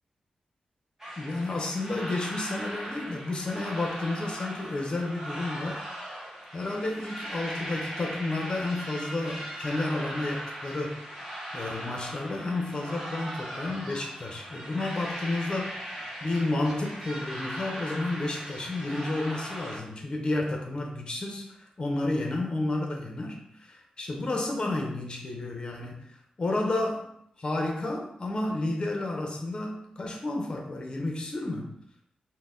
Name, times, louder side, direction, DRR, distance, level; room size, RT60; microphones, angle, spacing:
sound 1, 1.0-19.8, equal, 15° right, 0.9 m, -39 dB
voice 1, 1.2-5.8 6.5-11.0 11.5-15.7 16.2-27.1 27.4-31.8, left 2 dB, 35° left, 2 dB, 0.7 m, -31 dB
4.4 x 2.1 x 3.6 m, 0.75 s
wide cardioid pair, 155°, 3 cm